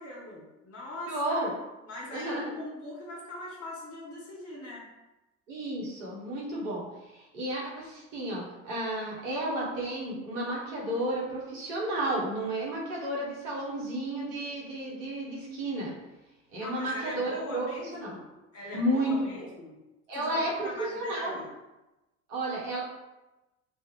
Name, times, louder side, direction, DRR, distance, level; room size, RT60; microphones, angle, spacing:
voice 1, 0.0-1.6 1.8-4.8 16.6-18.2 18.5-19.8 20.1-21.5, left 1 dB, 35° left, -3 dB, 1.2 m, -42 dB
voice 2, 1.1-1.5 2.1-2.5 5.5-15.9 16.5-17.7 17.9-18.1 18.7-19.5 20.1-21.4 22.3-22.8, right 1 dB, 75° right, -5 dB, 1.1 m, -32 dB
2.4 x 2.4 x 3.0 m, 1.0 s
figure-of-eight pair, 65°, 39 cm